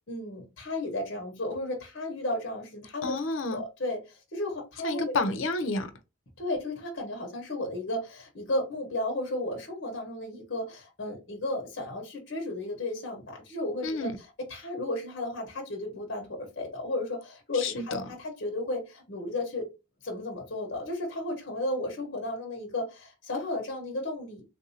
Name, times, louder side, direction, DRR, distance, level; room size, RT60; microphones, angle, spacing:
voice 1, 0.1-3.1 3.5-5.1 6.4-19.7 20.0-24.4, left 1 dB, 60° left, 1.0 m, -34 dB
voice 2, 3.0-3.6 4.8-5.9 13.8-14.2 17.5-18.0, left 3 dB, 85° left, 0.6 m, -30 dB
3.5 x 2.6 x 2.7 m
head